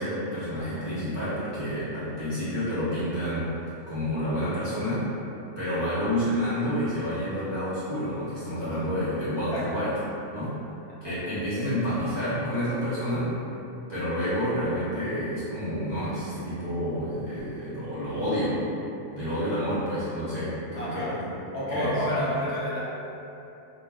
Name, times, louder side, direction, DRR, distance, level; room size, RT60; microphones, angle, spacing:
voice 1, 0.0-3.5 3.9-5.1 5.6-9.9 10.2-10.6 11.0-13.3 13.9-18.6 19.1-22.3, equal, 30° right, -14 dB, 0.5 m, -29 dB
voice 2, 9.5-9.8 10.9-11.0 11.6-11.7 20.8-21.1 21.5-22.8, left 1 dB, 70° left, -7 dB, 0.8 m, -29 dB
2.2 x 2.1 x 3.4 m, 2.9 s
omnidirectional pair, 1.4 m